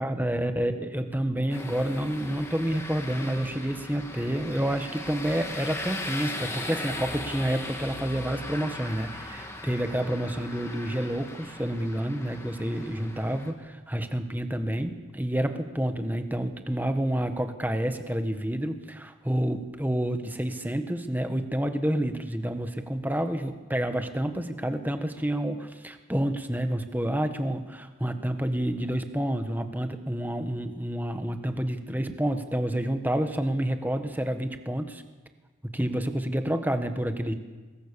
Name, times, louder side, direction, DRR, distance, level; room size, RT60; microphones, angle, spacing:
voice 1, 0.0-35.0 35.6-37.3, right 1 dB, 10° right, 7 dB, 1.5 m, -29 dB
sound 1, 1.5-13.5, left 2 dB, 15° left, 2.3 m, -38 dB
26.0 x 22.0 x 7.0 m, 1.3 s
head